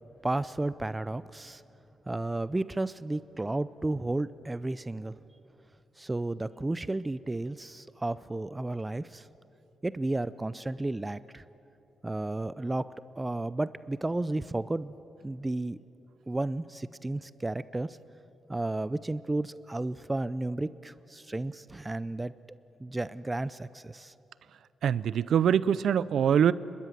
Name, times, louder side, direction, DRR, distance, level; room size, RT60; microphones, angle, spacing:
voice 1, 0.2-1.6 2.1-5.2 6.0-9.3 9.8-11.4 12.0-12.8 13.2-14.9 15.2-15.8 16.3-18.0 18.5-22.3 22.8-24.1, right 2 dB, 15° right, 16 dB, 0.5 m, -32 dB
voice 2, 24.8-26.5, right 8 dB, 70° right, 18 dB, 0.5 m, -24 dB
29.5 x 13.0 x 9.3 m, 2.9 s
cardioid pair, 95°, 0 cm